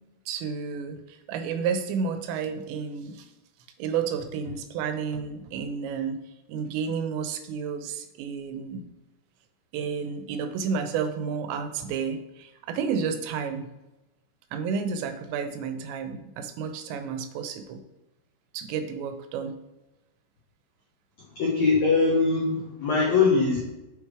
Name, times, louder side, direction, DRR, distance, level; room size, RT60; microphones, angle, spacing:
voice 1, 0.3-3.3 3.8-6.2 6.5-8.8 9.7-13.7 14.5-17.8 18.5-19.6, right 6 dB, 90° right, 8 dB, 2.9 m, -31 dB
voice 2, 21.3-23.6, left 4 dB, 90° left, -4 dB, 1.5 m, -22 dB
7.0 x 3.3 x 4.7 m, 0.99 s
omnidirectional pair, 4.9 m